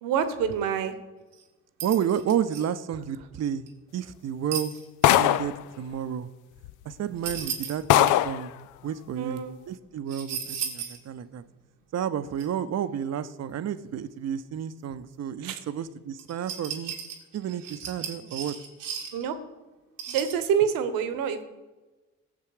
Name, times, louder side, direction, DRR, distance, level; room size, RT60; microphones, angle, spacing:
voice 1, 0.0-0.9 9.2-9.6 15.4-15.6 19.1-19.4 20.1-21.4, right 8 dB, 65° right, 11 dB, 1.2 m, -27 dB
sound 1, 1.3-1.4 1.8-2.6 3.7-3.8 4.5-5.2 7.2-8.1 10.1-11.0 11.4-11.5 12.4-12.5 16.2-19.3 20.0-20.4, right 7 dB, 80° right, 1.4 m, -35 dB
voice 2, 1.8-3.7 3.9-4.7 5.2-6.3 6.8-11.4 11.9-16.9 17.3-18.6, right 9 dB, 45° right, 13 dB, 0.8 m, -31 dB
sound 2, 5.0-5.6 6.6-6.7 7.3-7.4 7.9-8.4, left 13 dB, 55° left, 0.5 m, -20 dB
17.5 x 7.5 x 4.9 m, 1.2 s
figure-of-eight pair, 40°, 37 cm